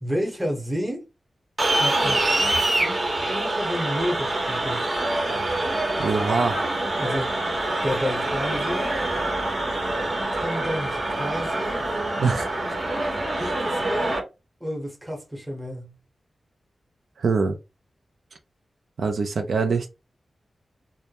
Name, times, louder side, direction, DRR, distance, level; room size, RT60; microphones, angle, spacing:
voice 1, 0.0-1.0 1.8-4.8 7.0-7.4 7.8-8.9 10.3-11.8 13.4-14.2 14.6-15.9, equal, 10° right, 0.8 m, -31 dB
sound 1, 1.6-14.2, right 2 dB, 45° right, 0.8 m, -25 dB
voice 2, 6.0-6.6 12.2-12.5 13.3-13.5 17.2-17.6 19.0-19.9, right 4 dB, 80° right, 0.4 m, -24 dB
2.2 x 2.0 x 2.7 m
wide cardioid pair, 105°, 0 cm